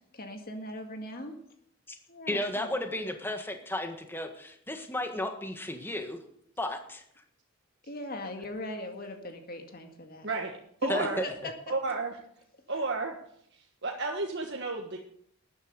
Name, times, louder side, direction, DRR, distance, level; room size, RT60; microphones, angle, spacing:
voice 1, 0.1-1.4 2.1-2.7 7.9-10.3 10.8-10.9 11.2-11.5, left 1 dB, 45° left, 4 dB, 1.9 m, -39 dB
voice 2, 2.3-6.2 6.6-7.0 10.9-11.2, left 1 dB, 10° left, 5 dB, 1.5 m, -33 dB
voice 3, 10.2-11.2 11.7-12.2 12.7-13.1 13.5-15.0, right 3 dB, 55° right, 1 dB, 1.4 m, -32 dB
13.5 x 9.7 x 6.7 m, 0.68 s
head